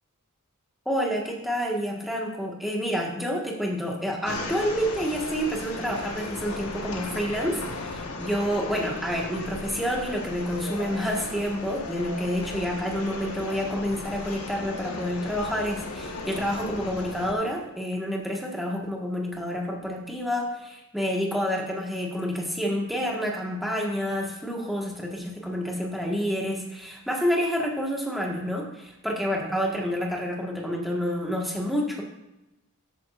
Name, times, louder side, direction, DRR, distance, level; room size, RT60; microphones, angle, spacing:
voice 1, 0.8-32.0, equal, ahead, -2 dB, 1.6 m, -29 dB
sound 1, 4.3-17.3, left 2 dB, 80° left, 1.4 m, -36 dB
13.0 x 9.1 x 2.5 m, 0.93 s
head